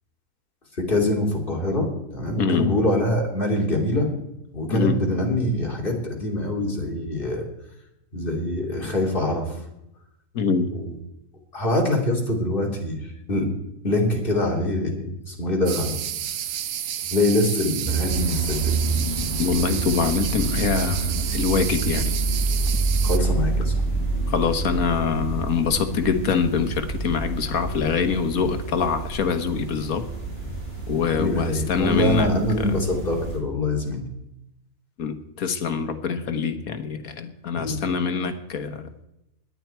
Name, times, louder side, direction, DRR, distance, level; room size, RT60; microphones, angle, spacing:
voice 1, 0.8-4.1 4.5-7.5 8.1-9.6 10.7-10.9 11.5-13.0 13.3-13.5 13.8-16.0 17.1-18.7 23.0-23.7 31.1-34.0 37.5-37.8, left 1 dB, 40° left, 0 dB, 3.3 m, -24 dB
voice 2, 2.4-2.8 4.7-5.0 10.3-10.7 19.4-22.1 24.3-30.1 30.9-32.3 32.6-32.8 35.0-38.9, left 5 dB, 80° left, 8 dB, 1.7 m, -24 dB
sound 1, 15.7-23.2, right 10 dB, 90° right, 1.3 m, -31 dB
sound 2, 17.8-33.4, right 3 dB, 45° right, 4.5 m, -28 dB
17.5 x 11.0 x 4.6 m, 0.85 s
omnidirectional pair, 1.5 m